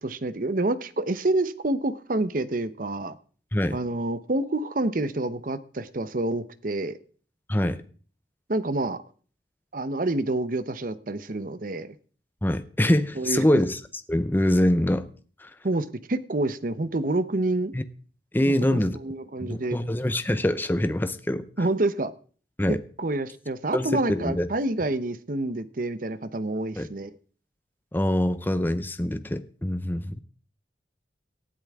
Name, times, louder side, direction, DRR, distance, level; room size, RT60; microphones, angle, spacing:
voice 1, 0.0-3.2 3.7-7.0 8.5-9.0 9.7-11.9 13.2-13.6 15.6-17.7 18.4-19.8 21.6-22.1 22.7-27.1, right 2 dB, 50° right, 0.8 m, -28 dB
voice 2, 12.4-13.8 14.1-15.1 15.4-15.5 17.7-17.8 18.3-19.0 19.4-21.6 22.6-22.8 23.7-24.5 26.8-26.9 27.9-30.2, left 1 dB, 10° left, 0.6 m, -24 dB
18.5 x 12.5 x 3.6 m
head